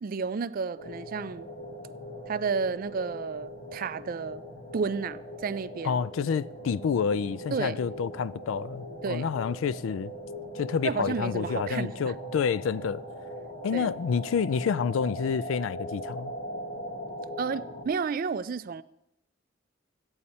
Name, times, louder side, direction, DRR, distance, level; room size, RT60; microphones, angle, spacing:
voice 1, 0.0-1.5 2.3-4.4 4.7-6.0 7.5-7.8 9.0-9.3 10.8-12.1 13.7-13.9 17.4-18.8, right 5 dB, 45° right, 0.4 m, -31 dB
sound 1, 0.8-17.9, equal, 55° left, 1.9 m, -40 dB
voice 2, 5.8-10.1 10.5-13.0 13.6-16.3, left 6 dB, 85° left, 0.4 m, -28 dB
15.0 x 8.8 x 4.2 m
head